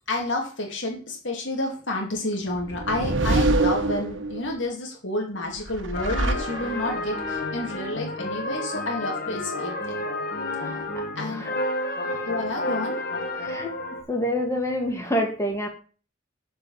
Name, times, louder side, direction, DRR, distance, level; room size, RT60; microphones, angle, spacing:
voice 1, 0.1-10.0 11.2-11.5 12.3-13.0, left 2 dB, 75° left, 0 dB, 2.5 m, -30 dB
sound 1, 2.5-4.5 5.6-7.1, right 2 dB, 80° right, 1.2 m, -25 dB
sound 2, 5.9-14.0, left 2 dB, 50° left, 1.8 m, -30 dB
voice 2, 10.6-11.6 13.4-13.8 14.1-15.7, equal, 15° left, 1 dB, 2.3 m, -28 dB
7.7 x 5.3 x 7.1 m, 0.38 s
head